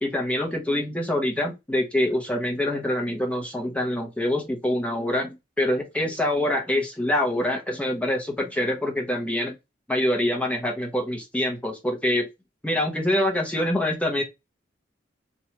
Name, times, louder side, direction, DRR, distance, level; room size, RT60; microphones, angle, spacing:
voice 1, 0.0-9.6 9.9-12.3 12.6-14.2, left 1 dB, 5° left, 0.7 m, -25 dB
3.0 x 2.3 x 2.8 m
head